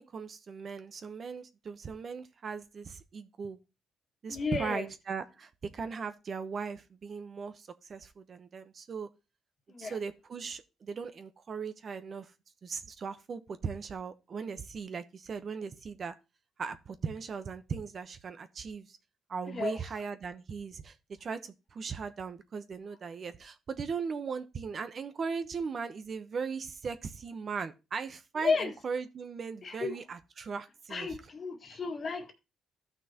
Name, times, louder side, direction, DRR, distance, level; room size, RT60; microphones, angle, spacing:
voice 1, 0.0-3.6 4.2-9.1 9.8-12.3 12.6-16.1 16.6-19.0 19.3-31.1, right 5 dB, 50° right, 0.9 m, -38 dB
voice 2, 4.3-4.9 9.7-10.0 19.5-19.8 28.4-28.7 29.6-30.0 30.9-32.3, left 4 dB, 45° left, 1.9 m, -33 dB
14.0 x 6.0 x 2.9 m
cardioid pair, 90°, 0 cm